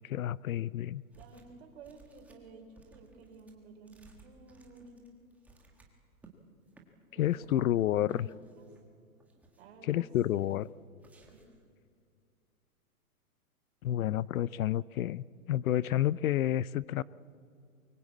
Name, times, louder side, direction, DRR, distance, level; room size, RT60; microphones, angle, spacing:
voice 1, 0.0-1.0 7.2-8.3 9.9-10.7 13.8-17.0, left 12 dB, 70° left, 22 dB, 0.6 m, -30 dB
sound 1, 1.1-1.6 1.8-6.3 6.7-6.9 7.2-7.6 8.1-8.8 9.2-9.8 10.3-10.7 11.0-11.6, right 4 dB, 5° right, 1.5 m, -61 dB
voice 2, 1.2-5.1 6.8-8.6 9.6-10.1 10.3-10.4 11.1-11.4, right 3 dB, 45° right, 3 dB, 4.3 m, -53 dB
24.0 x 21.5 x 8.4 m, 2.3 s
hypercardioid pair, 160°, 44 cm